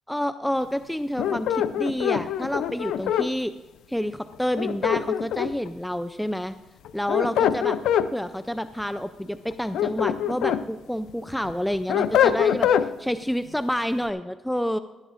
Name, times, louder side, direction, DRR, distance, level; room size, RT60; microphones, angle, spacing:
voice 1, 0.1-3.5 3.9-6.5 6.9-7.8 8.1-14.8, equal, 5° left, 11 dB, 0.4 m, -28 dB
sound 1, 1.2-3.3 4.6-5.7 6.8-8.1 9.5-10.6 11.1-12.9, left 9 dB, 80° left, 0.4 m, -23 dB
17.0 x 12.0 x 2.5 m, 1.2 s
cardioid pair, 90°, 0 cm